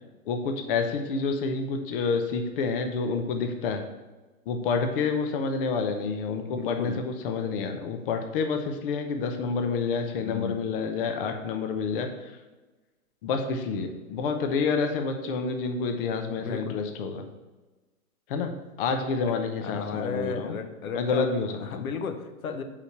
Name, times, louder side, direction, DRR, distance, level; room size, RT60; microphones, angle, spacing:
voice 1, 0.3-3.8 4.5-12.4 13.2-17.3 18.3-18.5 18.8-20.6 20.9-21.8, left 4 dB, 40° left, 6 dB, 0.8 m, -28 dB
voice 2, 6.4-7.1 10.2-10.6 16.4-16.8 19.3-19.4 19.6-21.3 21.6-22.6, left 5 dB, 70° left, 7 dB, 1.0 m, -34 dB
5.4 x 5.1 x 6.5 m, 1.2 s
hypercardioid pair, 125°, 43 cm